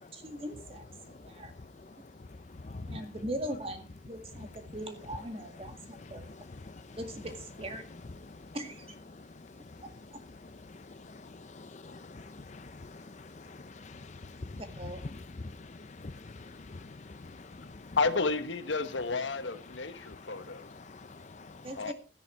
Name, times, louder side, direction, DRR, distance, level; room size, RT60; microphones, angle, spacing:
voice 1, 0.1-1.5 2.9-6.3 7.0-7.8 8.5-8.9 10.1-10.2 14.8-15.1 21.6-21.9, right 1 dB, 30° right, 2.0 m, -40 dB
voice 2, 2.6-3.0 6.3-6.4 6.6-7.0 8.3-8.5 9.1-9.8 10.7-14.6 15.1-18.0 20.0-21.7, left 3 dB, 40° left, 0.5 m, -46 dB
voice 3, 18.0-20.7 21.8-21.9, left 3 dB, 80° left, 1.3 m, -31 dB
13.5 x 10.5 x 4.4 m
head